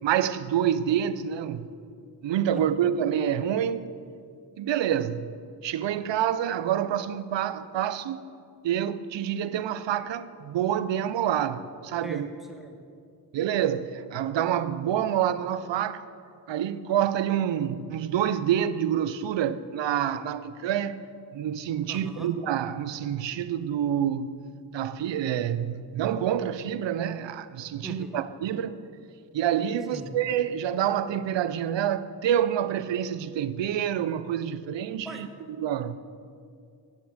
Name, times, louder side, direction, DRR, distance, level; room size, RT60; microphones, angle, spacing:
voice 1, 0.0-1.7 2.2-3.9 4.6-5.3 5.6-8.2 8.6-12.3 13.3-16.0 16.5-21.0 21.3-24.4 24.7-28.9 29.3-35.3 35.6-36.0, right 10 dB, 85° right, 0.5 m, -27 dB
voice 2, 2.5-2.9 12.0-12.8 21.9-22.3 27.8-28.2 29.9-30.1 35.0-35.2, equal, ahead, 1.5 m, -41 dB
8.2 x 8.2 x 6.1 m
cardioid pair, 45°, 43 cm